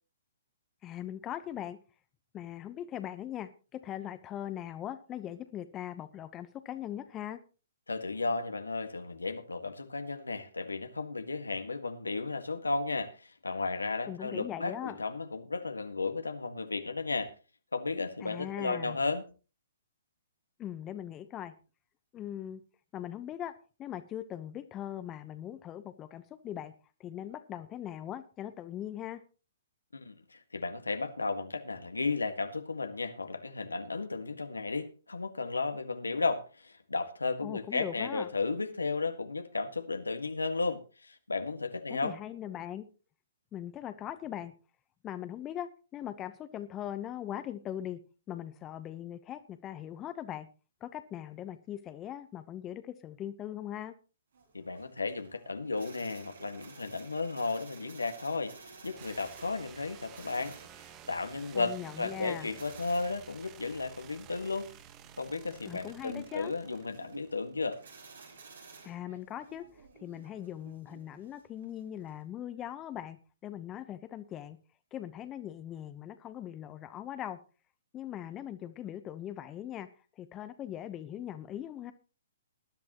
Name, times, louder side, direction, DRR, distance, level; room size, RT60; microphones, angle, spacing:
voice 1, 0.8-1.8 2.3-7.4 14.1-15.0 18.2-19.0 20.6-21.5 22.1-22.6 22.9-23.5 23.8-26.7 27.0-29.2 37.4-38.3 41.9-42.8 43.5-44.5 45.0-48.0 48.3-50.5 50.8-53.9 61.5-62.5 65.7-66.5 68.8-69.7 70.0-73.2 73.4-74.6 74.9-77.4 77.9-79.9 80.2-81.9, left 11 dB, 20° left, 1.0 m, -40 dB
voice 2, 7.9-17.3 17.7-19.2 29.9-42.1 54.5-60.6 61.1-64.7 65.2-67.8, left 3 dB, 85° left, 1.8 m, -34 dB
sound 1, 54.3-72.2, right 4 dB, 70° right, 5.4 m, -55 dB
sound 2, 59.0-67.7, right 9 dB, 30° right, 1.3 m, -53 dB
19.5 x 11.0 x 3.0 m
figure-of-eight pair, 130°, 0 cm